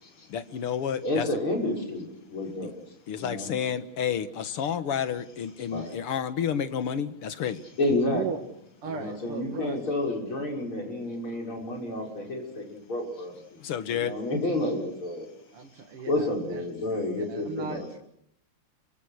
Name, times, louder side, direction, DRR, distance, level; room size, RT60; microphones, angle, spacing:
voice 1, 0.3-1.3 3.1-7.6 13.6-14.1, left 8 dB, 90° left, 11 dB, 2.4 m, -30 dB
voice 2, 1.0-2.7 3.1-3.5 5.7-6.0 7.8-8.2 8.9-13.3 13.9-15.3 16.1-17.8, left 1 dB, 70° left, 1 dB, 6.9 m, -30 dB
voice 3, 8.8-9.8 15.5-16.7 17.2-18.0, right 6 dB, 85° right, 3 dB, 2.8 m, -37 dB
29.0 x 24.5 x 6.5 m, 0.72 s
omnidirectional pair, 2.4 m